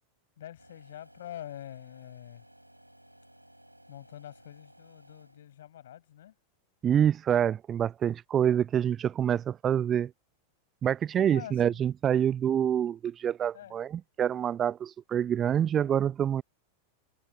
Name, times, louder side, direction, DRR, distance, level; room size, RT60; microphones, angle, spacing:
voice 1, 0.4-2.5 3.9-6.3 11.1-11.8 13.5-13.8, left 11 dB, 60° left, 7.1 m, -45 dB
sound 1, 0.6-5.7, right 1 dB, 90° right, 4.0 m, -57 dB
voice 2, 6.8-10.1 10.8-16.4, right 9 dB, 25° right, 0.5 m, -26 dB
figure-of-eight pair, 90°, 0 cm